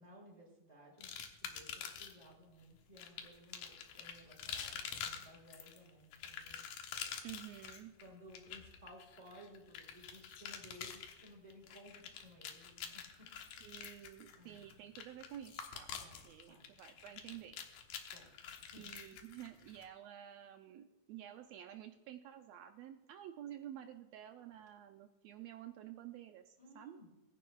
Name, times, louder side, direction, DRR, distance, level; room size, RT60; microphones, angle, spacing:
voice 1, 0.0-6.6 8.0-13.3 14.3-14.8 15.9-16.7 18.1-18.3 18.6-18.9 26.6-27.1, equal, 10° right, -3 dB, 4.8 m, -58 dB
sound 1, 1.0-2.3 3.0-19.8, left 8 dB, 80° left, 2.6 m, -47 dB
voice 2, 7.2-7.9 13.6-15.9 16.2-17.6 18.8-27.0, right 11 dB, 85° right, 6 dB, 1.5 m, -51 dB
21.0 x 10.0 x 2.3 m, 1.0 s
omnidirectional pair, 3.6 m